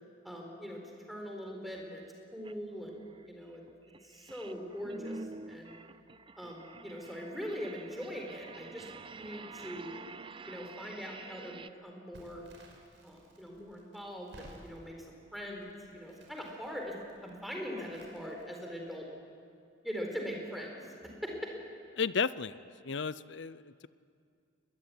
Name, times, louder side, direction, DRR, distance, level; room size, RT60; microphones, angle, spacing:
voice 1, 0.2-2.0 2.3-3.6 4.0-5.8 6.4-8.9 9.2-10.0 10.5-12.4 13.0-16.9 17.2-19.1 19.8-21.5, equal, ahead, 0 dB, 4.3 m, -42 dB
sound 1, 2.4-2.5 3.0-11.7, right 3 dB, 25° right, 0.6 m, -48 dB
Crackle, 12.1-18.9, right 1 dB, 70° right, 5.5 m, -58 dB
voice 2, 22.0-23.9, left 5 dB, 65° left, 17 dB, 0.6 m, -34 dB
23.0 x 21.0 x 9.9 m, 2.4 s
head